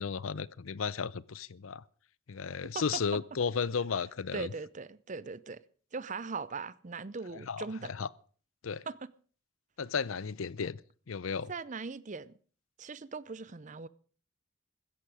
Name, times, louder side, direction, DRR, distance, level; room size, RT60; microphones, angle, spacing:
voice 1, 0.0-1.8 2.3-4.5 7.5-7.7 8.0-8.1 8.6-8.8 9.8-10.8 11.1-11.5, left 6 dB, 85° left, 0.6 m, -34 dB
voice 2, 4.3-5.6 5.9-8.0 8.9-9.0 11.5-12.3 12.8-13.9, right 4 dB, 40° right, 0.6 m, -39 dB
16.0 x 14.0 x 5.0 m
head